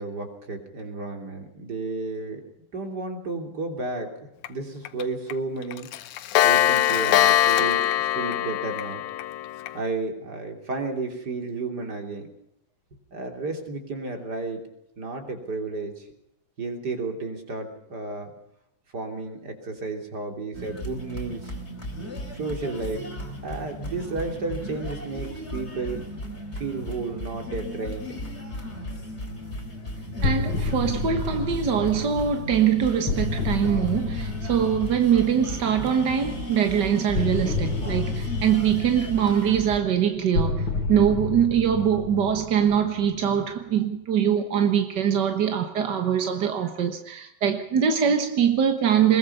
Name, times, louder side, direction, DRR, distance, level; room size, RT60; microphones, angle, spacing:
voice 1, 0.0-2.4 2.7-5.9 6.4-9.0 9.7-12.3 13.1-14.6 15.0-16.0 16.6-18.3 18.9-21.5 22.3-23.1 23.4-26.0 26.5-28.2, right 3 dB, 30° right, 3.4 m, -32 dB
Clock, 4.4-4.5 4.9-5.0 5.3-5.4 5.7-9.8, left 12 dB, 70° left, 2.1 m, -22 dB
sound 1, 20.5-39.8, equal, 20° left, 3.8 m, -36 dB
sound 2, 30.2-36.0 37.1-43.4, left 4 dB, 45° left, 3.0 m, -30 dB
voice 2, 30.2-49.2, right 8 dB, 50° right, 1.3 m, -23 dB
21.5 x 21.5 x 5.6 m
omnidirectional pair, 3.7 m